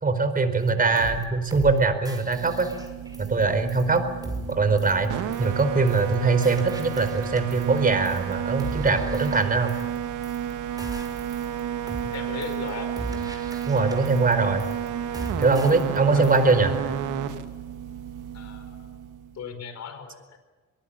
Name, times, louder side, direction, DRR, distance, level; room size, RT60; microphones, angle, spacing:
voice 1, 0.0-2.7 3.2-4.0 4.5-5.1 5.4-9.7 13.7-14.6 15.4-16.7, right 3 dB, 30° right, 9 dB, 4.6 m, -22 dB
sound 1, 0.7-0.8 1.0-1.2 1.5-1.8 2.0-3.4 3.7-4.0 4.2-4.5 4.8-5.1 5.3-5.6 5.9-6.1 6.4-7.8 8.0-8.3 8.6-10.0 10.2-10.5 10.8-11.6 11.9-12.1 12.4-12.7 13.0-14.3 14.6-14.9 15.1-16.0 16.2-16.5, right 1 dB, 10° right, 6.0 m, -38 dB
sound 2, 2.2-19.4, right 9 dB, 85° right, 2.0 m, -32 dB
voice 2, 12.0-12.9 16.1-16.3 18.3-19.0 19.3-20.4, left 6 dB, 60° left, 9 dB, 4.8 m, -38 dB
24.0 x 20.0 x 8.9 m, 1.3 s
cardioid pair, 90°, 30 cm